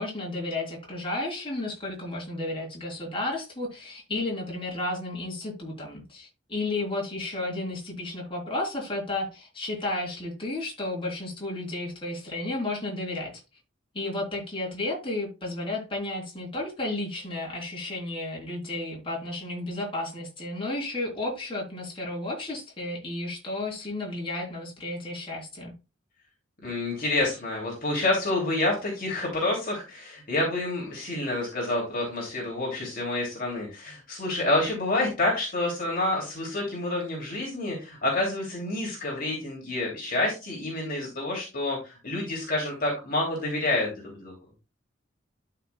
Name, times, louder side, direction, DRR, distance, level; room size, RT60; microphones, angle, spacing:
voice 1, 0.0-13.3 13.9-25.7, left 2 dB, 25° left, -2 dB, 3.7 m, -32 dB
voice 2, 26.6-44.3, left 2 dB, 45° left, -2 dB, 2.9 m, -28 dB
12.0 x 5.8 x 2.3 m, 0.28 s
head